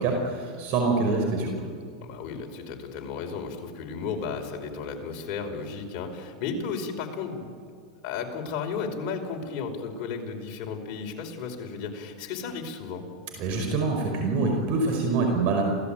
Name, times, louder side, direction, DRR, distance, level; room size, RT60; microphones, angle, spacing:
voice 1, 0.0-1.7 13.4-15.6, right 3 dB, 50° right, 2 dB, 5.0 m, -25 dB
voice 2, 2.0-7.5 8.0-13.1, left 5 dB, 45° left, 2 dB, 5.2 m, -34 dB
28.0 x 17.5 x 9.1 m, 2.2 s
supercardioid pair, 125°, 3 cm